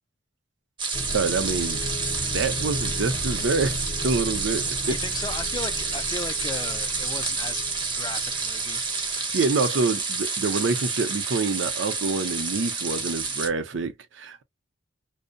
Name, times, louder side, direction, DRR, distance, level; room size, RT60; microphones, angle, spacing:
sound 1, 0.8-13.5, right 4 dB, 25° right, 0.5 m, -29 dB
sound 2, 0.9-9.5, left 1 dB, 50° left, 0.7 m, -36 dB
voice 1, 1.1-1.8 2.3-5.0 9.3-14.4, right 4 dB, 75° right, 0.5 m, -26 dB
voice 2, 4.9-9.0, left 4 dB, 20° left, 0.3 m, -36 dB
2.5 x 2.0 x 2.4 m
head